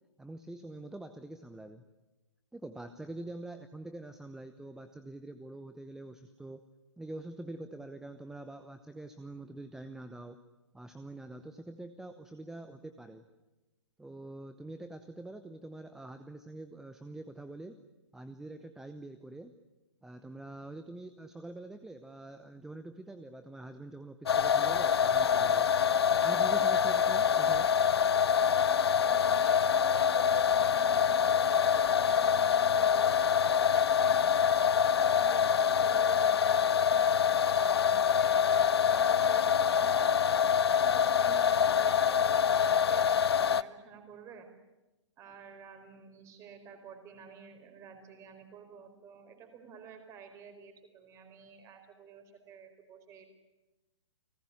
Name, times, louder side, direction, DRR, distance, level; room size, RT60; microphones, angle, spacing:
voice 1, 0.2-1.8 2.5-6.6 7.0-10.4 10.7-13.2 14.0-17.8 18.1-19.5 20.0-25.7 26.2-27.7, right 2 dB, 5° right, 10 dB, 0.9 m, -45 dB
sound 1, 24.3-43.6, left 8 dB, 55° left, 0.8 m, -25 dB
voice 2, 29.0-34.2 35.1-37.0 37.4-40.1 40.8-44.5 45.2-53.3, right 6 dB, 20° right, 7 dB, 4.6 m, -50 dB
30.0 x 19.0 x 9.8 m, 1.1 s
figure-of-eight pair, 125°, 16 cm